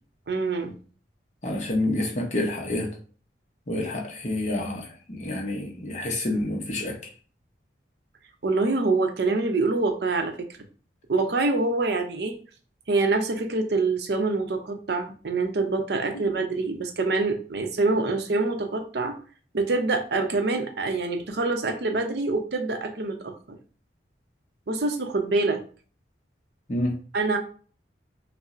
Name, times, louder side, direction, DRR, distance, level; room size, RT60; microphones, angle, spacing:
voice 1, 0.3-0.8 8.4-10.5 11.1-12.3 12.9-19.1 19.5-23.6 24.7-25.6 27.1-27.4, right 3 dB, 65° right, 6 dB, 0.6 m, -25 dB
voice 2, 1.4-2.9 3.7-7.0 16.1-16.2 26.7-27.0, left 1 dB, 40° left, 0 dB, 0.7 m, -28 dB
5.3 x 2.0 x 2.5 m, 0.41 s
head